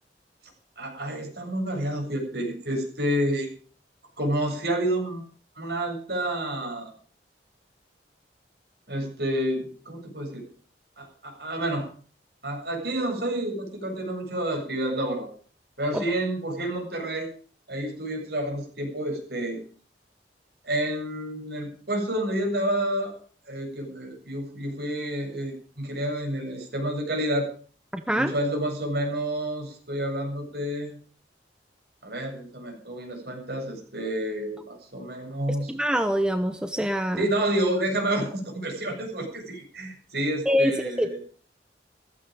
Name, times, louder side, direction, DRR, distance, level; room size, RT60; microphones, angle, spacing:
voice 1, 0.8-3.5 4.2-5.2 5.6-6.9 8.9-10.5 11.0-11.9 12.4-15.3 15.8-17.3 17.7-19.6 20.6-23.2 23.5-27.5 28.1-31.0 32.0-35.7 37.2-41.2, right 1 dB, 60° right, 2 dB, 7.4 m, -29 dB
voice 2, 27.9-28.3 35.5-37.2 40.5-41.1, equal, 5° right, 8 dB, 1.0 m, -25 dB
15.5 x 15.5 x 5.3 m, 0.43 s
head